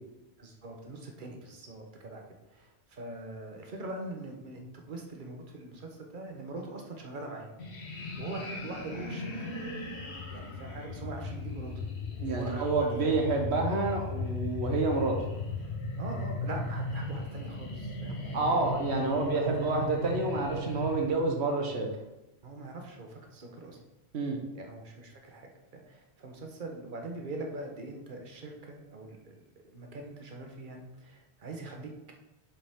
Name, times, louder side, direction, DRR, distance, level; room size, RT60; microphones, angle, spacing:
voice 1, 0.4-2.2 2.5-4.6 4.9-7.5 8.2-9.3 10.3-11.8 12.2-13.2 16.0-19.8 22.4-23.8 24.5-29.3 29.6-31.9, right 2 dB, 50° right, 2 dB, 1.2 m, -42 dB
sound 1, 7.6-21.1, left 3 dB, 70° left, 1.4 m, -37 dB
voice 2, 12.2-15.2 18.3-21.9 24.1-24.4, right 3 dB, 75° right, 2 dB, 1.4 m, -28 dB
7.2 x 5.6 x 3.6 m, 0.97 s
omnidirectional pair, 1.1 m